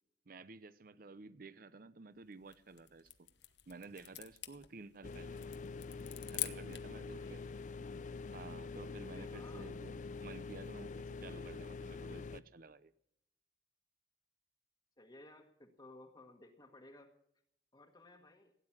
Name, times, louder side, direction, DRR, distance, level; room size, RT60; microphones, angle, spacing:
voice 1, 0.3-3.3 3.7-5.4 6.3-7.4 8.3-12.9, right 3 dB, 55° right, 0.7 m, -52 dB
sound 1, 2.3-7.0, left 14 dB, 80° left, 1.1 m, -46 dB
sound 2, 5.0-12.4, left 4 dB, 45° left, 0.5 m, -45 dB
voice 2, 7.1-7.6 9.1-9.7 15.0-17.1 17.7-18.5, left 2 dB, 25° left, 1.4 m, -57 dB
17.0 x 9.7 x 7.3 m
head